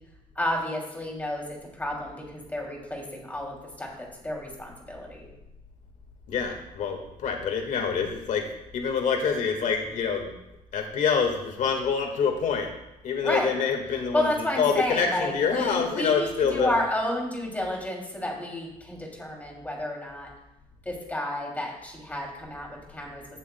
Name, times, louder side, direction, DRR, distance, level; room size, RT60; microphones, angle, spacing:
voice 1, 0.3-3.9 4.2-5.3 13.2-13.5 14.1-20.3 20.8-23.3, left 1 dB, 10° left, -1 dB, 2.8 m, -31 dB
voice 2, 6.3-8.5 8.7-10.3 10.7-12.7 13.0-16.8, left 6 dB, 70° left, 3 dB, 1.7 m, -26 dB
17.0 x 6.4 x 2.2 m, 0.90 s
cardioid pair, 100°, 14 cm